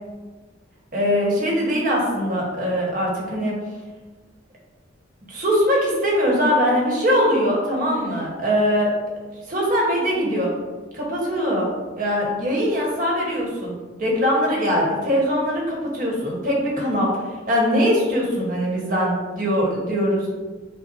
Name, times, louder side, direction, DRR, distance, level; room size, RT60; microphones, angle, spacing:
voice 1, 0.9-3.6 5.3-8.9 9.5-10.5 10.9-11.7 12.0-17.1 17.5-20.3, equal, 45° right, -3 dB, 1.2 m, -21 dB
5.5 x 2.1 x 4.2 m, 1.3 s
head